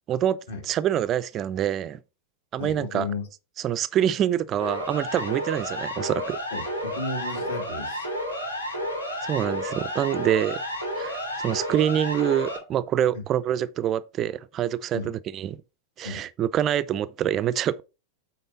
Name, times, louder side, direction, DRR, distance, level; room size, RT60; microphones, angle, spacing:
voice 1, 0.1-0.4 0.7-2.0 2.5-3.1 3.6-6.4 9.2-10.6 11.0-15.6 16.0-17.8, right 10 dB, 30° right, 0.3 m, -26 dB
voice 2, 2.6-3.3 6.5-8.1 13.1-13.2 14.9-15.1 16.0-16.2, left 3 dB, 60° left, 2.6 m, -34 dB
Siren, 4.6-12.6, equal, 80° left, 2.9 m, -31 dB
8.6 x 4.4 x 3.9 m
figure-of-eight pair, 90°, 0 cm